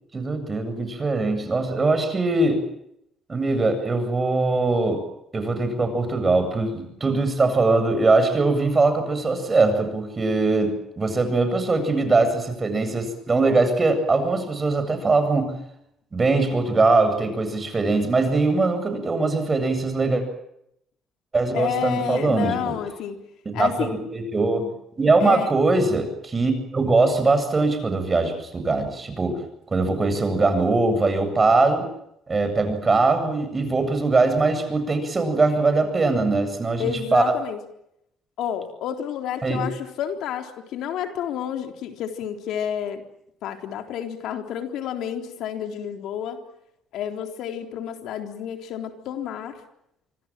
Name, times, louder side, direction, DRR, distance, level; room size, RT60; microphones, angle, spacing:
voice 1, 0.1-2.7 3.3-5.0 5.3-15.6 16.1-20.2 21.3-22.7 23.4-24.7 25.0-29.4 29.7-31.9 32.3-37.2 39.4-39.7, right 3 dB, 30° right, 9 dB, 7.9 m, -21 dB
voice 2, 21.5-23.2 23.5-24.0 25.2-25.5 36.8-37.6 38.4-43.0 43.4-46.4 46.9-49.6, left 9 dB, 80° left, 5 dB, 3.8 m, -30 dB
26.5 x 24.5 x 7.6 m, 0.78 s
cardioid pair, 95°, 0 cm